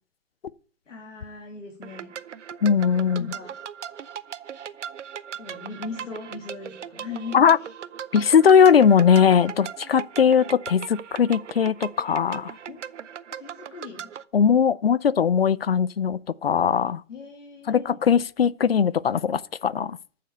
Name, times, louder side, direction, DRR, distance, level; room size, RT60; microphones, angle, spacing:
voice 1, 0.9-2.1 3.2-3.6 5.4-7.7 12.7-12.8 13.4-14.1 17.1-17.9, left 4 dB, 70° left, 2.7 m, -39 dB
sound 1, 1.8-14.2, right 8 dB, 65° right, 0.7 m, -39 dB
voice 2, 2.6-3.3 7.3-7.6 8.1-12.5 14.3-17.0 17.7-20.0, left 7 dB, 50° left, 0.4 m, -19 dB
9.3 x 6.7 x 6.8 m
hypercardioid pair, 175°, 38 cm